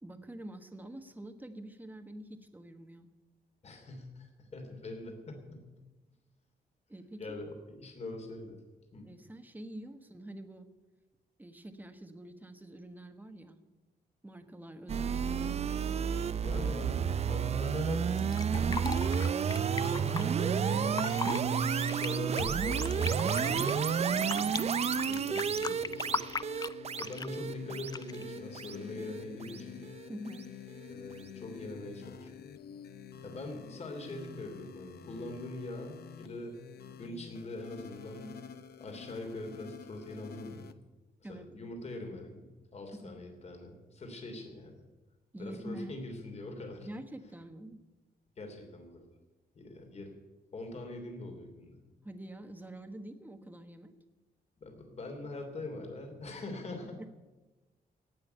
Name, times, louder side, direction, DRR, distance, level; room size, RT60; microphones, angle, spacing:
voice 1, 0.0-3.1 6.9-7.2 9.0-10.7 11.4-13.6 14.2-15.6 24.2-24.5 30.1-30.4 41.2-41.5 43.0-43.2 45.3-46.0 46.8-47.8 52.0-53.9 57.0-57.1, right 1 dB, 10° right, 8 dB, 1.2 m, -46 dB
voice 2, 3.6-5.7 7.2-8.6 8.9-9.1 16.4-18.3 19.8-24.5 24.9-26.2 27.0-29.9 30.9-32.4 33.2-36.5 37.0-38.4 38.8-40.7 41.3-44.8 45.4-46.9 48.4-49.1 49.5-50.2 50.5-51.8 54.6-57.1, left 2 dB, 40° left, 3 dB, 3.0 m, -43 dB
sound 1, 14.9-30.1, right 7 dB, 40° right, 0.5 m, -31 dB
Fill (with liquid), 18.2-20.2 20.8-21.4 21.8-24.6 24.9-27.4 27.9-28.3, left 5 dB, 25° left, 0.4 m, -38 dB
sound 2, 23.1-40.7, left 7 dB, 75° left, 0.9 m, -48 dB
17.5 x 6.3 x 10.0 m, 1.1 s
wide cardioid pair, 140°, 16 cm